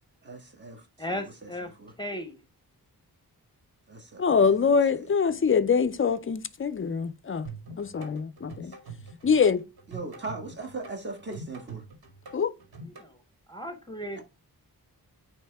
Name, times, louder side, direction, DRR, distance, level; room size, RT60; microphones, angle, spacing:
voice 1, 0.2-0.9 1.1-1.9 3.9-4.6 5.0-5.5 8.6-8.7 9.9-11.8 14.1-14.2, right 3 dB, 30° right, 1.6 m, -40 dB
voice 2, 1.0-1.7 2.0-2.4 12.9-13.2 13.5-14.2, left 1 dB, 10° left, 0.8 m, -36 dB
voice 3, 4.2-7.5 7.8-8.7 9.2-9.6 12.3-12.5, left 6 dB, 35° left, 0.4 m, -24 dB
sound 1, 7.4-13.1, right 3 dB, 85° right, 2.1 m, -44 dB
9.2 x 3.1 x 3.3 m
wide cardioid pair, 175°, 36 cm